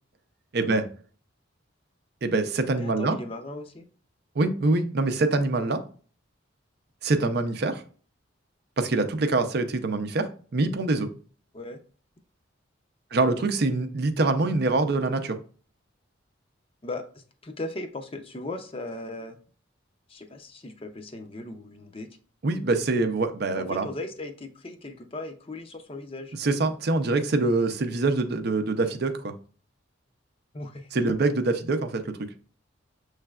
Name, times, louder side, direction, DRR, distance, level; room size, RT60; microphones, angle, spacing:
voice 1, 0.5-0.8 2.2-3.2 4.4-5.8 7.0-7.8 8.8-11.1 13.1-15.4 22.4-23.9 26.4-29.3 30.9-32.0, right 3 dB, 55° right, 0.5 m, -24 dB
voice 2, 2.7-3.9 11.5-11.8 13.1-13.4 16.8-19.4 20.1-22.1 23.5-26.4 30.5-30.9, left 2 dB, 30° left, 0.5 m, -38 dB
6.7 x 3.2 x 2.3 m
head